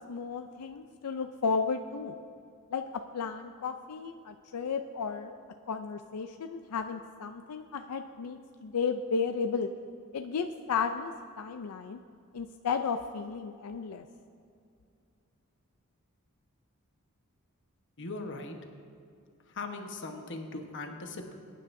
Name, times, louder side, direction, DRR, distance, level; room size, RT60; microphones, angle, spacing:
voice 1, 0.1-2.1 2.7-2.8 3.1-5.4 5.7-9.7 10.1-12.0 12.3-14.0, left 5 dB, 90° left, 7 dB, 0.5 m, -33 dB
voice 2, 18.0-18.6 19.5-21.3, left 3 dB, 55° left, 4 dB, 1.2 m, -39 dB
21.5 x 9.9 x 2.6 m, 2.4 s
head